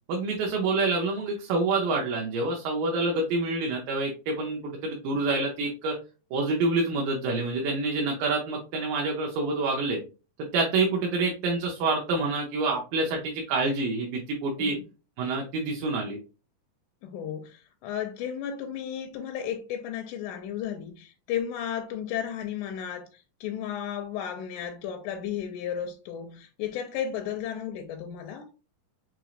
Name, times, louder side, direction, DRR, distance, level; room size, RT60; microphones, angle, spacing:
voice 1, 0.1-6.0 6.3-10.0 10.5-14.8 15.2-16.2, right 3 dB, 85° right, 2.5 m, -27 dB
voice 2, 17.0-28.5, left 9 dB, 80° left, 2.0 m, -34 dB
6.0 x 3.0 x 2.4 m
omnidirectional pair, 3.8 m